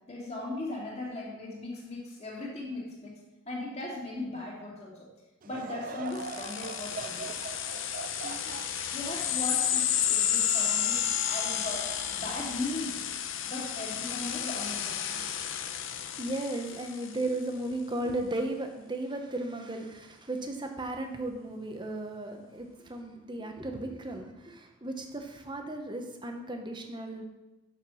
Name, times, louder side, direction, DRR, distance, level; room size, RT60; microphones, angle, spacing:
voice 1, 0.1-3.1 3.5-5.0 5.4-7.4 8.2-8.6 8.9-13.0 13.4-15.3, left 2 dB, 30° left, -4 dB, 2.5 m, -38 dB
Laughter / Crowd, 5.4-10.9 11.4-11.5 12.3-12.6, right 4 dB, 40° right, 0.5 m, -42 dB
sound 1, 6.1-17.2, left 9 dB, 65° left, 0.7 m, -31 dB
voice 2, 15.8-27.2, right 1 dB, 20° right, 4 dB, 1.0 m, -35 dB
6.8 x 6.7 x 6.3 m, 1.0 s
head